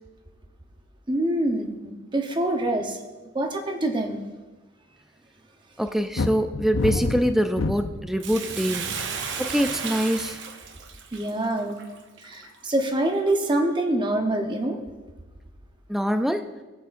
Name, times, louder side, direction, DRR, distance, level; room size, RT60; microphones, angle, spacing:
voice 1, 1.1-3.0 3.3-4.2 11.1-11.8 12.2-14.8, right 1 dB, 25° right, 4 dB, 0.9 m, -25 dB
voice 2, 5.8-8.9 9.4-10.4 15.9-16.5, equal, ahead, 8 dB, 0.3 m, -24 dB
sound 1, 6.2-8.1 8.8-9.2, left 3 dB, 75° left, 0.6 m, -27 dB
Bathtub (filling or washing), 8.2-12.7 13.3-13.4, right 6 dB, 60° right, 0.8 m, -34 dB
16.0 x 8.3 x 2.6 m, 1.2 s
head